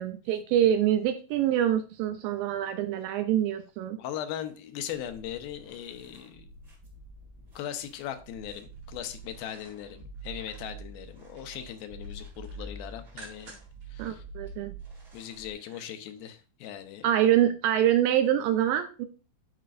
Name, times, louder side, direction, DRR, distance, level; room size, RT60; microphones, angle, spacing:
voice 1, 0.0-4.0 14.0-14.8 17.0-19.1, right 11 dB, 80° right, 8 dB, 2.1 m, -25 dB
voice 2, 4.0-6.5 7.6-13.6 13.9-14.2 15.1-17.1, left 10 dB, 80° left, 8 dB, 2.5 m, -39 dB
sound 1, 4.8-15.5, right 2 dB, 35° right, 1.3 m, -46 dB
sound 2, 8.7-10.8 11.2-11.7 12.0-13.8 14.2-14.3, right 2 dB, 60° right, 3.7 m, -53 dB
12.5 x 5.0 x 2.5 m, 0.35 s
omnidirectional pair, 4.4 m